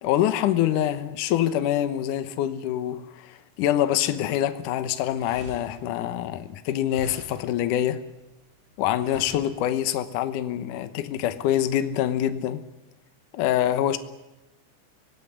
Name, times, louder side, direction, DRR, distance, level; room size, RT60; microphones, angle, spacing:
voice 1, 0.0-8.0 8.8-12.6 13.3-14.0, left 11 dB, 90° left, 1.8 m, -25 dB
sound 1, 4.8-10.1, right 1 dB, 40° right, 8.0 m, -47 dB
24.5 x 18.5 x 9.9 m
omnidirectional pair, 5.2 m